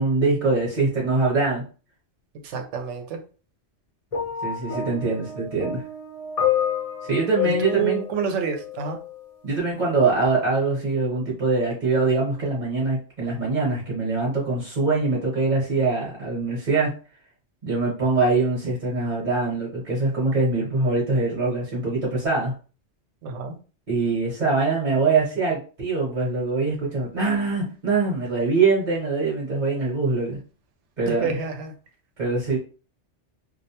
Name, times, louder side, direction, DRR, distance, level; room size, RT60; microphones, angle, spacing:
voice 1, 0.0-1.6 4.4-5.8 7.0-8.0 9.4-16.9 17.6-22.5 23.9-30.4 31.0-31.3 32.2-32.6, right 3 dB, 45° right, -4 dB, 1.0 m, -23 dB
voice 2, 2.4-3.2 7.4-9.0 23.2-23.6 31.1-31.7, right 6 dB, 80° right, 5 dB, 0.9 m, -28 dB
sound 1, 4.1-9.2 10.1-10.3, left 8 dB, 40° left, 0.6 m, -29 dB
2.4 x 2.1 x 2.8 m, 0.36 s
omnidirectional pair, 1.2 m